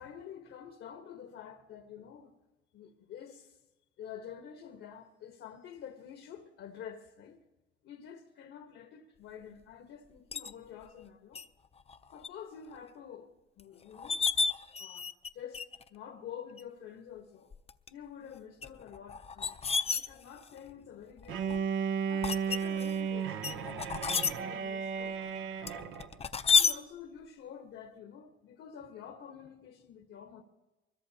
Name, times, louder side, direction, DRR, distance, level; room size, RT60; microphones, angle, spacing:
voice 1, 0.0-2.3 2.7-3.6 4.0-7.4 7.8-11.4 12.1-14.2 14.8-17.5 17.9-21.7 22.1-25.9 26.5-30.4, left 8 dB, 80° left, 1.3 m, -48 dB
sound 1, 10.3-10.5 11.3-11.5 11.9-12.3 12.7-12.8 13.6-13.7 13.9-15.3 15.5-15.9 16.6-16.7 17.5-17.9 18.6-20.6 21.2-21.6 22.2-22.9 23.4-24.3 25.7-26.7, left 5 dB, 30° left, 0.6 m, -30 dB
Bowed string instrument, 21.3-26.2, right 7 dB, 80° right, 1.0 m, -34 dB
23.5 x 21.5 x 2.8 m
cardioid pair, 90°, 20 cm